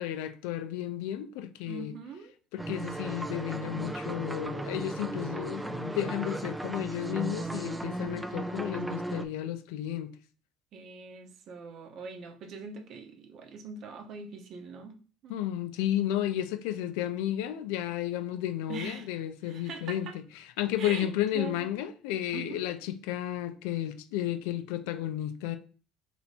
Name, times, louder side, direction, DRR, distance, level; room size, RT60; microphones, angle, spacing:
voice 1, 0.0-1.9 2.5-10.1 15.3-20.2 20.6-25.6, left 12 dB, 90° left, 0.4 m, -32 dB
voice 2, 1.6-2.3 10.7-15.0 15.2-15.4 18.7-19.1 19.4-20.2 20.8-21.7 22.3-22.6, right 4 dB, 55° right, 0.8 m, -42 dB
sound 1, 2.6-9.3, right 2 dB, 10° right, 0.4 m, -36 dB
3.4 x 2.9 x 4.1 m
cardioid pair, 110°, 0 cm